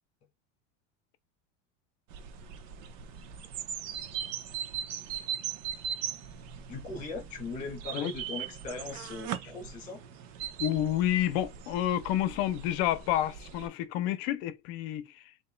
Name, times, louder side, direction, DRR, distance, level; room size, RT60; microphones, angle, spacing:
sound 1, 2.1-13.7, right 8 dB, 75° right, 1.0 m, -39 dB
voice 1, 6.7-10.0, left 3 dB, 20° left, 1.8 m, -39 dB
voice 2, 10.6-15.1, left 12 dB, 50° left, 0.6 m, -29 dB
6.8 x 2.8 x 2.2 m
cardioid pair, 170°, 38 cm